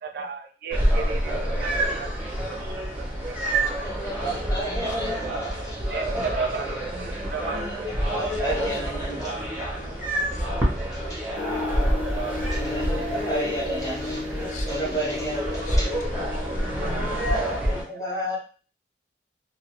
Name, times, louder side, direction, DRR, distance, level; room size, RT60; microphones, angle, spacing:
voice 1, 0.0-2.1 2.5-3.0 3.5-3.6 5.9-6.7 7.0-7.9 10.8-11.2 14.2-14.3 15.5-15.9 16.8-16.9 17.6-18.0, right 5 dB, 55° right, 4 dB, 0.4 m, -35 dB
sound 1, 0.7-17.8, right 1 dB, 10° right, 0.6 m, -27 dB
voice 2, 0.8-1.8 3.8-6.6 7.5-9.4 9.8-11.2 11.5-12.1 12.5-14.2 14.7-16.0 17.7-18.4, right 1 dB, 20° left, -5 dB, 0.9 m, -33 dB
voice 3, 8.1-10.5 14.4-15.8 16.2-16.5, left 3 dB, 45° left, 3 dB, 0.4 m, -45 dB
sound 2, 11.3-17.3, left 4 dB, 85° left, 1.0 m, -35 dB
2.2 x 2.1 x 2.8 m, 0.38 s
head